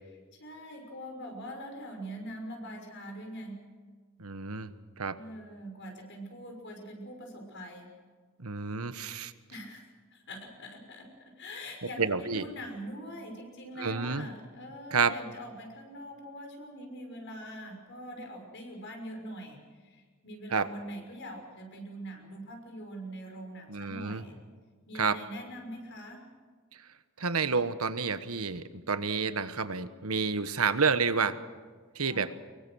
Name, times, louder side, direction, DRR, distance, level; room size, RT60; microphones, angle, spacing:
voice 1, 0.4-3.6 5.1-7.9 9.5-24.4 24.9-26.3 32.0-32.3, equal, 55° left, 3 dB, 6.2 m, -43 dB
voice 2, 4.2-4.7 5.0-5.2 8.4-9.3 12.0-12.5 13.8-14.3 14.9-15.1 20.5-20.6 23.7-24.2 24.9-25.2 27.2-31.4 31.9-32.3, right 5 dB, 80° right, 11 dB, 1.3 m, -29 dB
25.0 x 23.0 x 6.4 m, 1.5 s
head